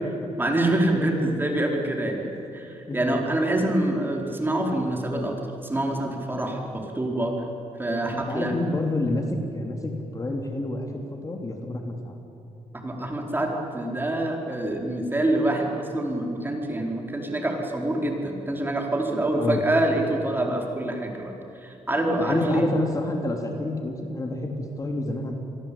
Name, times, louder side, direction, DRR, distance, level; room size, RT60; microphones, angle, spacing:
voice 1, 0.4-2.2 2.5-5.3 5.6-7.3 7.8-8.5 12.8-21.3 21.6-22.7, right 1 dB, 15° right, 1 dB, 4.6 m, -26 dB
voice 2, 8.1-9.2 9.5-10.9 11.2-12.1 19.3-19.6 22.2-25.4, left 2 dB, 30° left, 3 dB, 3.1 m, -28 dB
27.5 x 22.5 x 8.7 m, 2.8 s
cardioid pair, 100°, 12 cm